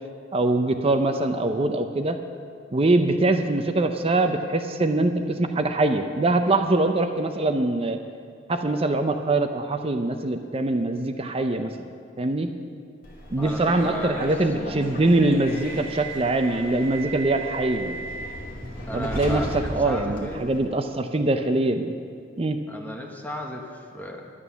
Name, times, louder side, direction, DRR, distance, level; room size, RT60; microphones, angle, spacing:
voice 1, 0.3-2.2 2.7-8.0 8.5-11.7 12.2-12.5 13.3-18.0 18.9-19.4 19.7-21.9 22.4-22.6, right 2 dB, 30° right, 7 dB, 0.6 m, -23 dB
Subway metro underground, 13.0-20.6, equal, 50° left, 2.7 m, -35 dB
voice 2, 13.4-14.3 14.6-14.9 18.9-20.5 22.7-24.3, equal, 10° left, 1 dB, 1.0 m, -35 dB
11.0 x 11.0 x 6.9 m, 2.3 s
head